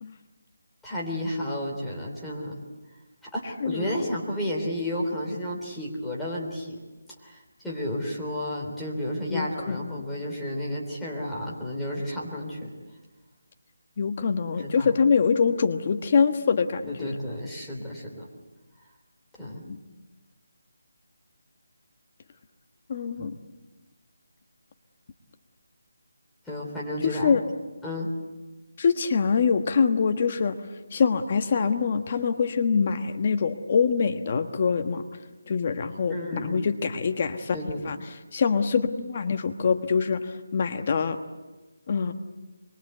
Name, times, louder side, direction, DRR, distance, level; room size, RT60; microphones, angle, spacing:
voice 1, 0.8-2.6 3.2-6.8 7.2-12.7 14.6-14.9 16.9-18.3 19.4-19.6 23.2-23.3 26.4-27.4 27.8-28.1 36.1-36.6 37.5-37.9, equal, 5° left, -5 dB, 3.4 m, -32 dB
voice 2, 3.6-3.9 9.3-10.0 14.0-17.2 19.7-19.8 22.9-23.3 27.0-27.4 28.8-30.6 30.9-35.0 35.5-37.6 37.8-38.0 38.3-40.2 40.5-41.2 41.9-42.1, left 5 dB, 30° left, 8 dB, 1.3 m, -24 dB
25.5 x 23.5 x 8.1 m, 1.2 s
figure-of-eight pair, 170°, 0 cm